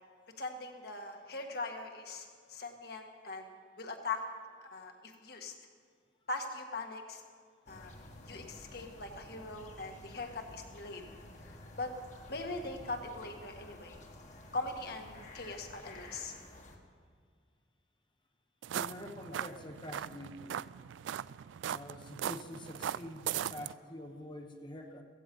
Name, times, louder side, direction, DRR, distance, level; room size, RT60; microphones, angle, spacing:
voice 1, 0.4-3.5 3.8-4.2 4.7-5.5 6.3-7.2 7.7-7.9 8.3-11.0 11.4-11.9 12.3-14.0 14.5-16.4, left 3 dB, 55° left, 3 dB, 1.7 m, -41 dB
sound 1, 7.7-16.8, left 1 dB, 40° left, 1.6 m, -52 dB
sound 2, 18.6-23.7, right 10 dB, 80° right, 0.3 m, -39 dB
voice 2, 18.7-20.6 21.7-25.0, left 1 dB, 25° left, 3 dB, 1.0 m, -46 dB
15.5 x 15.5 x 5.4 m, 2.1 s
head